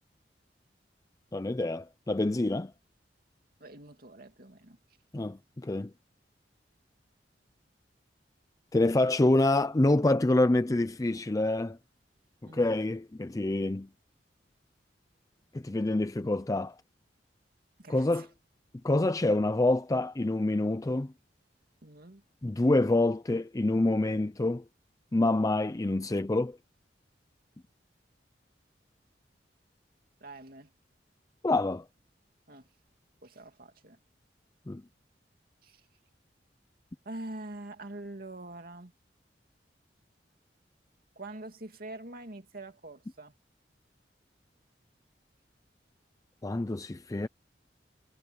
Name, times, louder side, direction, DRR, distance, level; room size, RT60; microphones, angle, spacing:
voice 1, 1.3-2.7 5.1-5.9 8.7-11.8 12.5-13.9 15.5-16.7 17.9-18.3 18.8-21.1 22.4-24.6 25.1-26.6 31.4-31.8 34.7-34.8 46.4-47.3, left 2 dB, 20° left, 0.5 m, -26 dB
voice 2, 3.6-4.8 12.4-12.7 17.8-18.3 21.8-22.2 30.2-30.7 32.5-32.7 33.2-34.0 35.6-35.8 37.0-38.9 41.2-43.3, right 2 dB, 55° right, 2.6 m, -44 dB
head